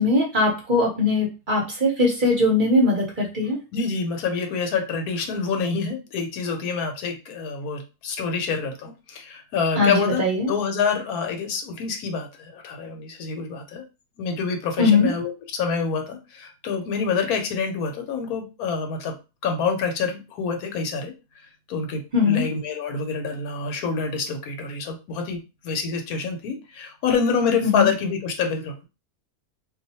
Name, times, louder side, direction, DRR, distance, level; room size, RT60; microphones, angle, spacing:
voice 1, 0.0-3.6 9.8-10.5 14.8-15.1 22.1-22.4 27.6-27.9, left 3 dB, 40° right, -2 dB, 0.8 m, -20 dB
voice 2, 3.7-13.8 14.2-19.1 19.4-21.1 21.7-28.8, left 5 dB, 80° left, 4 dB, 1.2 m, -27 dB
2.6 x 2.4 x 4.1 m, 0.29 s
omnidirectional pair, 1.5 m